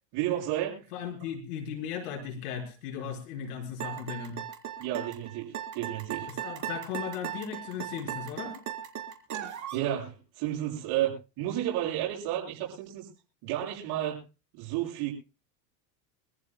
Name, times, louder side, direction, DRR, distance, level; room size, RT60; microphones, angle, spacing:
voice 1, 0.1-0.9 4.8-6.3 9.7-13.1 13.4-14.2 14.5-15.1, right 12 dB, 60° right, -4 dB, 7.1 m, -32 dB
voice 2, 0.9-4.4 6.3-8.6, left 7 dB, 80° left, 4 dB, 5.2 m, -37 dB
sound 1, 3.8-9.9, right 10 dB, 40° right, 3.8 m, -37 dB
25.5 x 14.5 x 2.2 m, 0.31 s
supercardioid pair, 105°, 45 cm